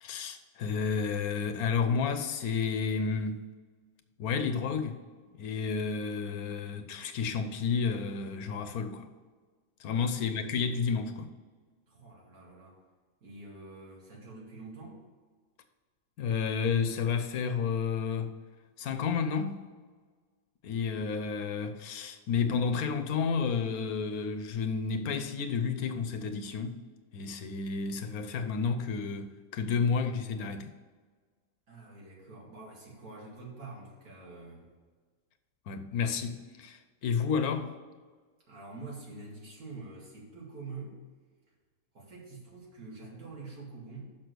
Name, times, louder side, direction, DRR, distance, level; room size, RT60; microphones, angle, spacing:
voice 1, 0.0-3.4 4.2-5.0 5.4-9.1 9.8-11.3 16.2-18.3 18.8-19.6 20.6-26.8 27.1-30.7 35.7-37.7, left 5 dB, 90° left, 1.3 m, -31 dB
voice 2, 9.9-10.4 11.9-12.8 13.2-15.0 31.7-34.7 38.5-41.0 41.9-44.0, right 3 dB, 80° right, 2.7 m, -46 dB
6.2 x 6.1 x 6.6 m
omnidirectional pair, 1.5 m